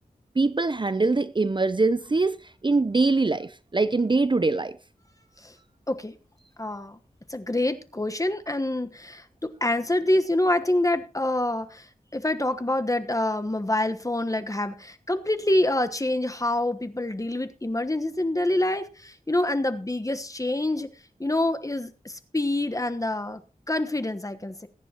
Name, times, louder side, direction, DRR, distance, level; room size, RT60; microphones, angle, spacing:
voice 1, 0.4-2.4 2.6-4.7, right 3 dB, 35° right, 0.5 m, -23 dB
voice 2, 6.6-7.0 7.3-11.8 12.1-20.9 21.2-23.4 23.7-24.7, left 1 dB, 25° left, 1.2 m, -26 dB
21.0 x 10.0 x 2.9 m
wide cardioid pair, 70°, 15 cm